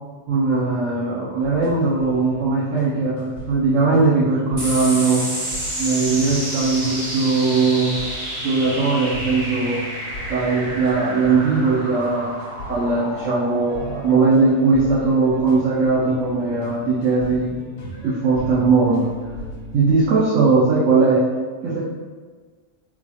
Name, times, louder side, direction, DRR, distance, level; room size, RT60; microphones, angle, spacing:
voice 1, 0.3-5.3 5.8-8.0 8.4-9.8 10.3-12.3 12.7-17.5 18.0-19.1 19.7-21.2 21.6-21.8, right 4 dB, 75° right, -7 dB, 1.0 m, -19 dB
sound 1, 1.4-20.1, left 2 dB, 60° left, 0.9 m, -37 dB
sound 2, 4.6-19.4, right 1 dB, 35° right, 0.6 m, -31 dB
4.1 x 2.3 x 2.9 m, 1.5 s
omnidirectional pair, 1.3 m